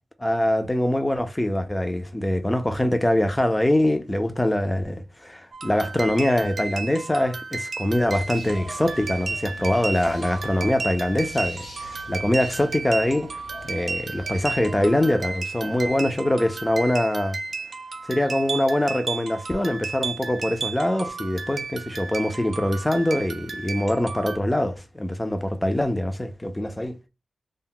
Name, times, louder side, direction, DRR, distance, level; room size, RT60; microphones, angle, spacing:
voice 1, 0.2-17.4 18.1-27.0, left 1 dB, 10° left, 0.3 m, -23 dB
sound 1, 5.5-24.4, right 4 dB, 60° right, 0.4 m, -33 dB
sound 2, 8.1-15.1, left 2 dB, 65° left, 0.9 m, -44 dB
2.1 x 2.1 x 3.7 m
wide cardioid pair, 115°, 0 cm